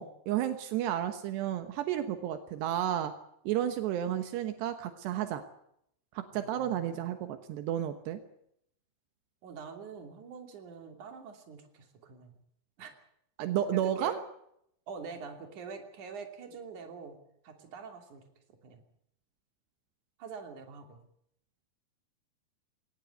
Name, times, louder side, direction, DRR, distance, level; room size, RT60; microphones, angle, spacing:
voice 1, 0.0-3.1 3.4-5.4 6.1-8.2 13.4-14.1, right 11 dB, 80° right, 8 dB, 3.4 m, -32 dB
voice 2, 6.3-7.1 9.4-12.3 12.8-12.9 13.7-14.2 14.9-17.2 17.4-18.2 18.6-18.8 20.2-21.0, right 5 dB, 50° right, 4 dB, 4.1 m, -45 dB
21.5 x 18.5 x 8.4 m, 0.72 s
omnidirectional pair, 4.8 m